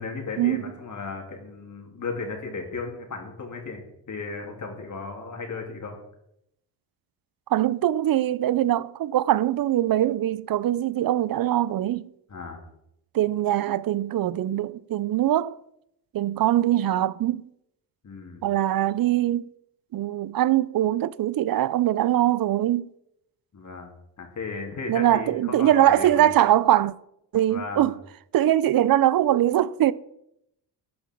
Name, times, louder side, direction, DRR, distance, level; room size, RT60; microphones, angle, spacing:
voice 1, 0.0-3.8 4.1-6.0 12.3-12.6 18.0-18.5 23.5-23.9 24.2-26.3 27.5-27.9, left 4 dB, 40° left, 2.9 m, -35 dB
voice 2, 7.5-12.1 13.1-15.6 16.1-17.5 18.4-19.5 19.9-22.9 24.9-26.9 27.3-28.0 28.3-29.9, right 12 dB, 55° right, 0.6 m, -22 dB
13.0 x 8.5 x 4.5 m
cardioid pair, 115°, 43 cm